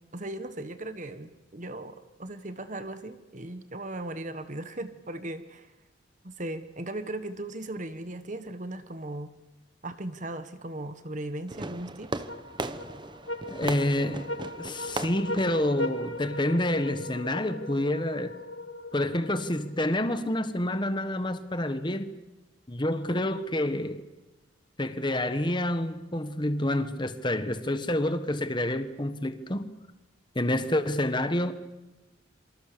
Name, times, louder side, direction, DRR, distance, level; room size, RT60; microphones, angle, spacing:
voice 1, 0.0-5.7 6.2-9.3 9.8-12.2, right 1 dB, 40° right, 1.4 m, -37 dB
Fireworks, 11.5-16.5, right 2 dB, 25° right, 1.0 m, -38 dB
sound 1, 12.3-19.8, left 2 dB, 75° left, 2.6 m, -38 dB
voice 2, 13.5-18.4 18.9-22.1 22.7-24.0 24.8-29.7 30.3-31.5, left 1 dB, 25° left, 1.4 m, -28 dB
27.0 x 25.5 x 6.9 m
head